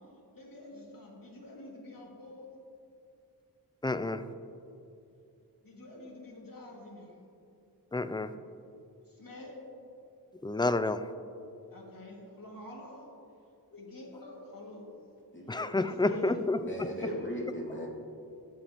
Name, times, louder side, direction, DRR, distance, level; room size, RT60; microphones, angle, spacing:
voice 1, 0.3-2.5 5.6-7.2 9.2-9.5 11.7-13.1 13.7-14.8 15.7-17.2, left 2 dB, 55° left, -3 dB, 2.5 m, -46 dB
voice 2, 3.8-4.2 7.9-8.3 10.4-11.0 15.5-16.6, left 2 dB, 10° left, 11 dB, 0.4 m, -29 dB
voice 3, 15.3-15.9 16.6-17.9, equal, 30° left, -4 dB, 2.7 m, -38 dB
18.0 x 7.4 x 3.1 m, 2.6 s
wide cardioid pair, 55°, 39 cm